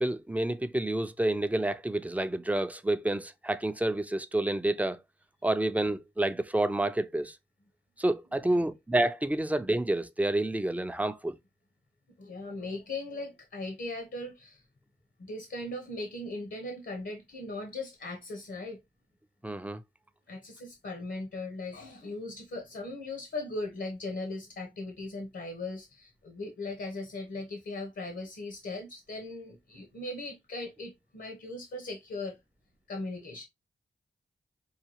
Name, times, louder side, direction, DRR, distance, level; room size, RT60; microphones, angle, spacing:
voice 1, 0.0-5.0 5.4-7.4 8.0-11.4 19.4-19.8, right 1 dB, 10° right, 0.5 m, -29 dB
voice 2, 12.2-14.6 15.2-18.8 20.3-32.4 32.9-33.5, left 2 dB, 75° left, 1.2 m, -38 dB
5.7 x 2.3 x 2.9 m
cardioid pair, 60°, 19 cm